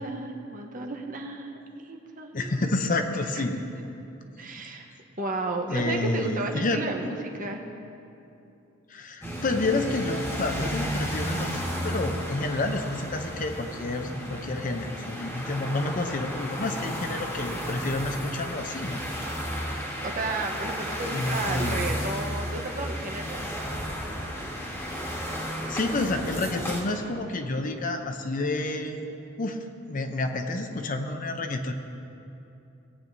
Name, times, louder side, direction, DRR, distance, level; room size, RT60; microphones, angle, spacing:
voice 1, 0.0-2.5 3.3-3.4 4.4-4.9 5.2-7.6 20.0-23.4, right 2 dB, 40° right, 2 dB, 0.9 m, -33 dB
voice 2, 2.3-3.9 5.7-6.8 8.9-19.0 21.1-21.9 25.7-29.0 29.4-31.7, left 2 dB, 40° left, 6 dB, 0.6 m, -29 dB
sound 1, 9.2-26.8, equal, 15° left, 1.6 m, -33 dB
19.0 x 8.9 x 2.7 m, 2.8 s
head